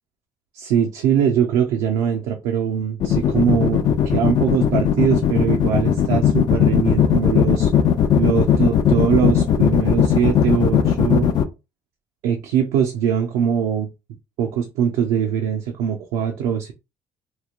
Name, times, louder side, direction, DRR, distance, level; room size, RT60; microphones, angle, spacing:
voice 1, 0.5-7.7 8.2-11.3 12.2-13.9 14.4-16.7, right 8 dB, 80° right, 0.5 m, -22 dB
sound 1, 3.0-11.4, left 9 dB, 60° left, 0.5 m, -17 dB
3.0 x 2.7 x 2.4 m
hypercardioid pair, 60°, 8 cm